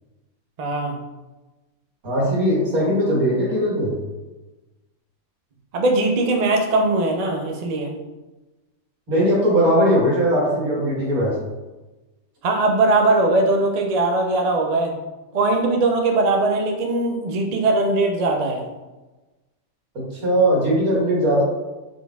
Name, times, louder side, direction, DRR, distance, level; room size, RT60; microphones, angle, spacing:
voice 1, 0.6-1.0 5.7-7.9 12.4-14.9 15.3-18.6, right 2 dB, 55° right, 2 dB, 0.4 m, -20 dB
voice 2, 2.0-4.0 9.1-11.4 20.2-21.4, equal, 85° right, -4 dB, 1.9 m, -19 dB
5.0 x 4.2 x 2.3 m, 1.1 s
omnidirectional pair, 1.5 m